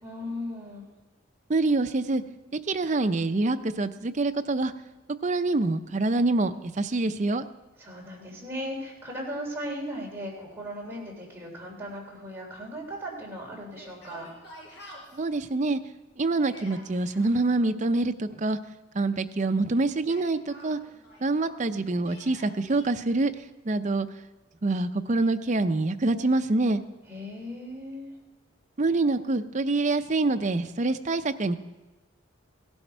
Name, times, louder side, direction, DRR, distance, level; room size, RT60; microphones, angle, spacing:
voice 1, 0.0-0.8 7.8-14.3 27.1-28.1, equal, 10° right, -3 dB, 3.2 m, -37 dB
voice 2, 1.5-2.2 2.5-4.7 5.2-7.4 15.1-15.8 16.2-18.6 18.9-20.8 21.2-24.1 24.6-26.8 28.8-31.6, right 2 dB, 35° right, 8 dB, 0.5 m, -26 dB
Yell, 13.7-15.2 16.3-17.3 19.9-21.6 22.0-22.9, equal, 60° left, 5.1 m, -48 dB
16.5 x 11.5 x 4.5 m, 1.1 s
head